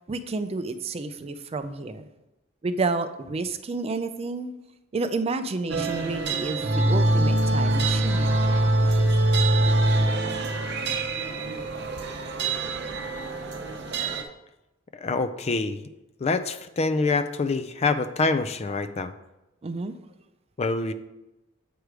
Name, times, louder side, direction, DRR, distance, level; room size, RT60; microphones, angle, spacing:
voice 1, 0.1-2.1 2.6-4.5 4.9-8.4 19.6-19.9, right 3 dB, 30° right, 10 dB, 0.4 m, -30 dB
sound 1, 5.7-14.2, right 1 dB, 60° right, 0.7 m, -24 dB
voice 2, 15.0-15.8 16.2-19.1 20.6-20.9, left 3 dB, 30° left, 11 dB, 0.4 m, -25 dB
7.9 x 4.8 x 4.8 m, 0.96 s
head